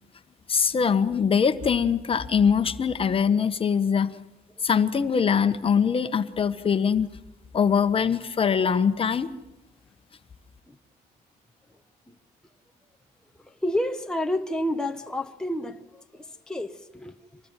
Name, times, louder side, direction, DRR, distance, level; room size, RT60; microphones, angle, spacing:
voice 1, 0.5-4.2 4.6-7.1 7.5-9.3, left 6 dB, 35° left, 1.3 m, -22 dB
voice 2, 13.6-17.4, left 1 dB, 5° left, 1.1 m, -30 dB
26.5 x 19.5 x 9.1 m
cardioid pair, 110°, 17 cm